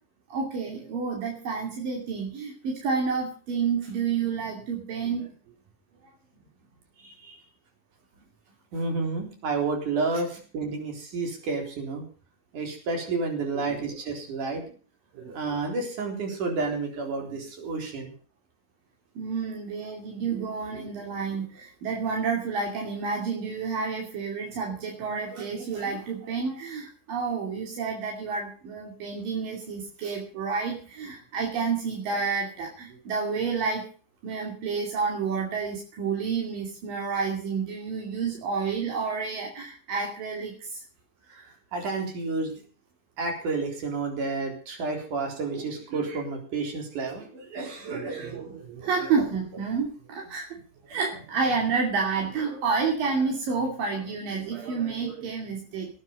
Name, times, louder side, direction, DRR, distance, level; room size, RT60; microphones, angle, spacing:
voice 1, 0.3-5.3 13.5-13.8 15.1-15.4 17.3-17.4 19.2-33.8 34.2-40.8 47.9-50.5 50.8-55.9, right 5 dB, 80° right, 0 dB, 4.4 m, -30 dB
voice 2, 7.0-7.4 8.7-12.0 12.5-14.6 15.3-18.1 19.8-19.9 41.3-42.5 43.2-48.4 49.0-49.2, right 3 dB, 65° right, 2 dB, 5.3 m, -31 dB
18.5 x 9.7 x 5.3 m, 0.40 s
omnidirectional pair, 3.9 m